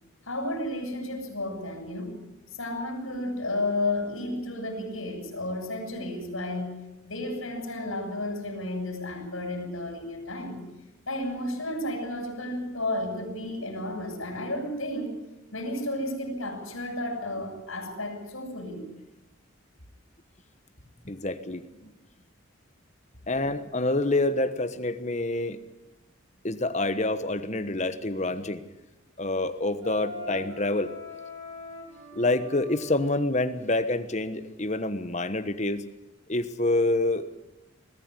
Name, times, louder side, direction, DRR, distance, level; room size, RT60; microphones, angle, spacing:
voice 1, 0.3-2.2 2.5-6.7 7.0-10.6 11.1-15.1 15.5-18.8, left 1 dB, 85° left, 3 dB, 7.0 m, -32 dB
voice 2, 21.0-21.9 23.3-25.6 26.4-28.6 29.2-30.9 32.1-35.8 36.3-37.3, left 2 dB, 35° left, 10 dB, 1.2 m, -27 dB
Wind instrument woodwind instrument, 29.8-33.1, left 1 dB, 75° right, 7.5 m, -41 dB
21.5 x 14.5 x 9.9 m, 0.99 s
head